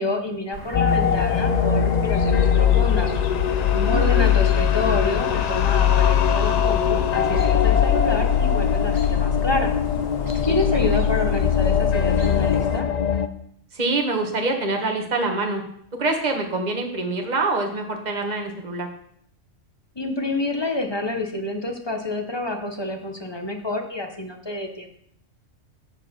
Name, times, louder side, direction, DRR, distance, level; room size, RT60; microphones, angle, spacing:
voice 1, 0.0-3.1 3.9-9.7 10.4-12.9 20.0-24.9, left 2 dB, 25° left, 4 dB, 0.9 m, -28 dB
Chirp tweet, 0.5-12.7, right 2 dB, 80° right, 2.1 m, -39 dB
sound 1, 0.7-13.3, left 8 dB, 65° left, 0.4 m, -20 dB
sound 2, 0.8-12.8, left 7 dB, 80° left, 1.1 m, -33 dB
voice 2, 3.7-4.3 10.5-10.6 13.7-15.6 16.0-18.9, right 2 dB, 35° right, 2 dB, 1.4 m, -25 dB
8.0 x 4.7 x 6.7 m, 0.67 s
omnidirectional pair, 1.3 m